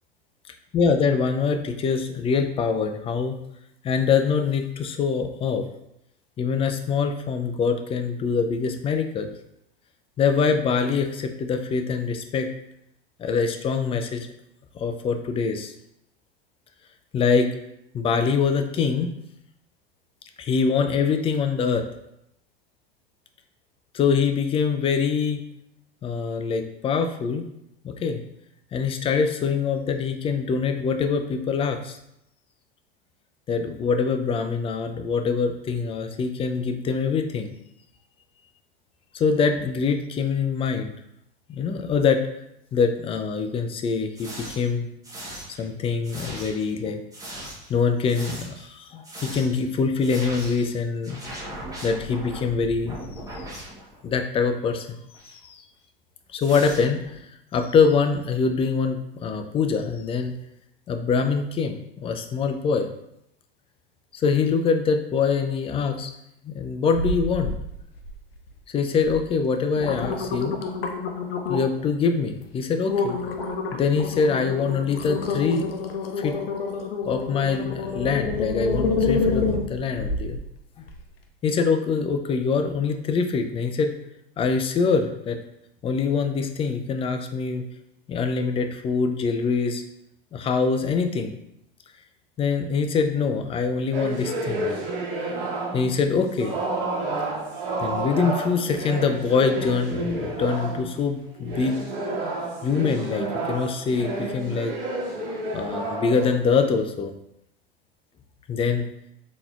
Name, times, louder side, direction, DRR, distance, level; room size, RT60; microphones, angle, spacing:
voice 1, 0.7-3.4 3.8-5.7 6.4-9.3 10.2-12.5 13.2-14.3 14.7-15.7 17.1-17.5 17.9-19.1 20.4-21.8 23.9-25.4 26.0-27.5 27.8-28.2 28.7-32.0 33.5-37.5 39.1-40.9 41.5-42.3 42.7-44.9 45.6-47.0 47.7-51.2 51.8-53.0 53.3-53.4 54.0-54.9 55.3-55.6 56.3-57.2 57.5-60.4 60.9-62.9 64.1-66.1 66.4-67.5 68.7-70.6 71.5-73.2 73.7-75.7 76.2-76.4 77.1-80.4 81.4-83.9 84.4-85.4 85.8-87.7 88.1-89.8 90.3-91.4 92.4-94.8 95.7-96.6 97.8-101.8 102.6-104.7 105.5-107.1 108.5-108.8, left 5 dB, 20° left, 6 dB, 0.3 m, -24 dB
sound 1, 44.1-44.7 45.0-45.7 46.0-46.7 47.1-47.7 48.1-48.7 49.0-49.6 50.0-50.7 51.0-54.2 55.1-55.3 56.4-57.2, right 1 dB, 10° right, 1.2 m, -39 dB
sound 2, 66.9-67.6 68.0-68.5 69.0-69.2 69.6-71.8 72.3-72.5 72.9-80.4 80.9-81.0, left 4 dB, 85° left, 0.6 m, -27 dB
sound 3, 93.9-96.0 96.4-100.9 101.4-106.8, right 2 dB, 75° right, 1.2 m, -30 dB
3.8 x 2.9 x 2.4 m, 0.78 s
hypercardioid pair, 90°, 29 cm